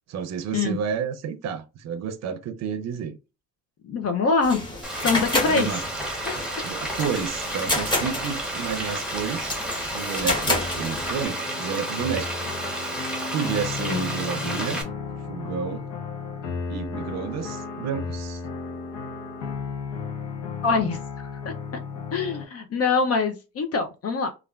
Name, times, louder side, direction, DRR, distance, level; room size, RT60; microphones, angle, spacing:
voice 1, 0.1-3.2 5.5-5.8 6.6-9.6 9.9-12.4 13.3-14.8 15.3-15.9 16.7-18.4, right 7 dB, 60° right, 0.5 m, -30 dB
voice 2, 3.8-4.7 5.0-5.8 6.3-6.4 13.8-14.0 20.6-21.0 21.4-21.5 22.1-24.3, left 4 dB, 55° left, 0.6 m, -24 dB
sound 1, 4.4-11.2, left 2 dB, 15° left, 1.1 m, -30 dB
Frying (food), 4.8-14.8, right 1 dB, 5° right, 0.8 m, -31 dB
sound 2, 10.4-22.4, left 5 dB, 90° left, 0.7 m, -34 dB
3.2 x 2.4 x 2.3 m
cardioid pair, 90°, 30 cm